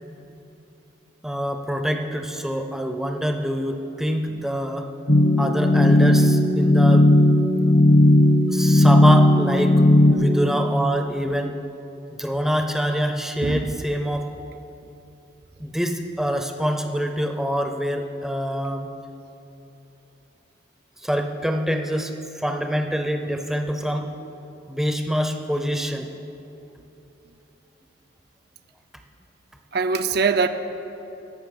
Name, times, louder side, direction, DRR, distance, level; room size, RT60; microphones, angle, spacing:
voice 1, 1.2-4.9 5.4-7.1 7.5-7.6 8.0-8.1 8.5-11.6 12.2-14.3 15.6-18.9 21.0-24.1 24.7-26.1, equal, ahead, 0.6 m, -25 dB
sound 1, 5.1-10.1, left 1 dB, 60° left, 1.4 m, -15 dB
voice 2, 29.7-30.5, right 5 dB, 55° right, 0.5 m, -22 dB
17.0 x 5.7 x 7.0 m
head